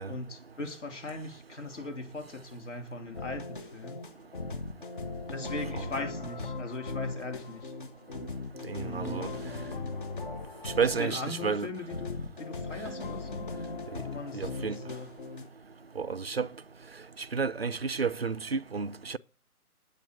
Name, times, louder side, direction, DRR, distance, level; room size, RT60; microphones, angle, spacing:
voice 1, 0.1-4.0 5.2-7.7 8.8-9.3 10.8-13.5 14.0-15.1, left 2 dB, 50° left, 3.3 m, -39 dB
sound 1, 3.1-15.5, left 3 dB, 35° left, 1.5 m, -39 dB
voice 2, 8.7-9.3 10.6-11.7 13.9-14.0 14.3-14.8 16.0-16.5 17.3-19.2, right 5 dB, 45° right, 0.5 m, -31 dB
9.0 x 8.7 x 9.5 m
figure-of-eight pair, 150°, 46 cm